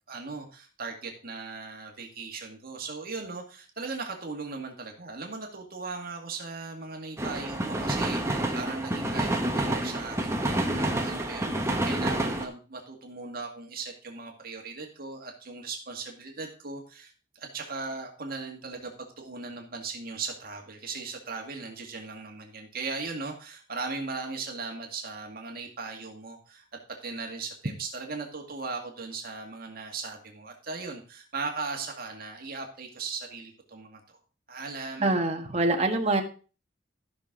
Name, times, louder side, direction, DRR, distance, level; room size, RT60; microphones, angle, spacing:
voice 1, 0.1-26.7 27.0-34.2 34.5-35.2, right 4 dB, 55° right, 2 dB, 2.1 m, -38 dB
sound 1, 7.2-12.4, right 1 dB, 15° right, 1.3 m, -28 dB
voice 2, 35.0-36.2, right 2 dB, 35° right, 4 dB, 1.5 m, -25 dB
14.5 x 6.2 x 3.8 m, 0.35 s
head